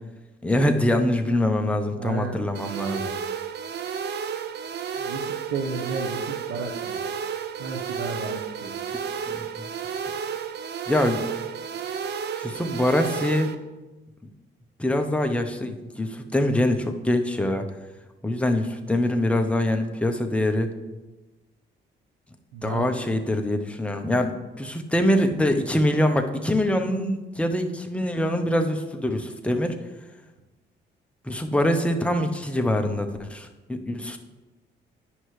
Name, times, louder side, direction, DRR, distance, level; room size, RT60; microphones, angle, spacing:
voice 1, 0.4-3.1 9.3-9.4 10.9-11.2 12.4-13.5 14.8-17.6 18.2-20.7 22.6-29.8 31.3-34.2, left 1 dB, 5° left, 4 dB, 0.8 m, -24 dB
voice 2, 1.9-2.3 5.0-7.0 7.6-8.8 22.5-23.0, right 4 dB, 90° right, 0 dB, 0.9 m, -33 dB
sound 1, 2.5-13.5, right 7 dB, 60° right, 0.6 m, -32 dB
9.8 x 5.6 x 3.2 m, 1.1 s
cardioid pair, 90°, 20 cm